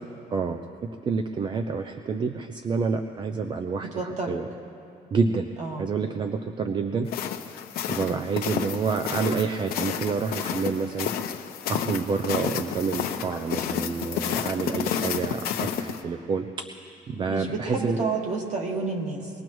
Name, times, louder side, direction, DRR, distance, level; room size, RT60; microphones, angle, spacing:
voice 1, 1.0-4.4 5.1-5.5 5.8-7.1 7.9-11.1 11.7-16.7 17.1-18.0, right 5 dB, 30° right, 6 dB, 0.5 m, -28 dB
voice 2, 3.8-4.4 5.6-5.9 8.1-8.2 17.3-19.3, right 4 dB, 45° right, 1 dB, 1.8 m, -30 dB
sound 1, 7.1-16.0, left 9 dB, 65° left, 0.8 m, -30 dB
24.0 x 19.0 x 3.1 m, 2.6 s
cardioid pair, 180°, 17 cm